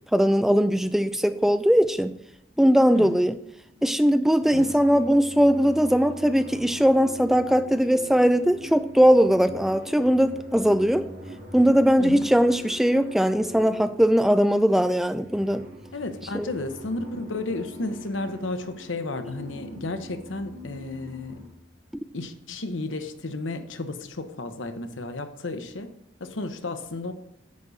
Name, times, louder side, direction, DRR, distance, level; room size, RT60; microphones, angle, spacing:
voice 1, 0.1-2.1 2.6-3.4 3.8-11.1 11.5-15.6 16.3-16.5, equal, ahead, 10 dB, 0.3 m, -20 dB
sound 1, 3.7-4.0 4.4-14.4 15.0-21.5, equal, 50° right, 2.1 m, -42 dB
voice 2, 15.9-21.4 22.1-25.9 26.2-27.1, left 2 dB, 90° left, 8 dB, 0.9 m, -33 dB
10.5 x 8.1 x 4.0 m, 0.74 s
head